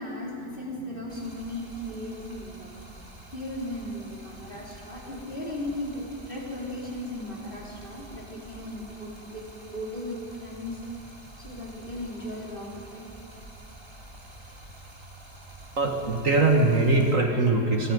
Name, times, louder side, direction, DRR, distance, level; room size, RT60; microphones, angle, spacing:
voice 1, 0.0-2.7 3.3-10.8 11.4-13.1 14.4-14.5, left 1 dB, 30° left, -4 dB, 4.8 m, -36 dB
Stream, 1.1-17.1, right 1 dB, 15° right, 2.7 m, -47 dB
voice 2, 15.8-17.9, right 3 dB, 50° right, 2 dB, 2.2 m, -22 dB
28.5 x 23.5 x 5.4 m, 2.8 s
omnidirectional pair, 1.8 m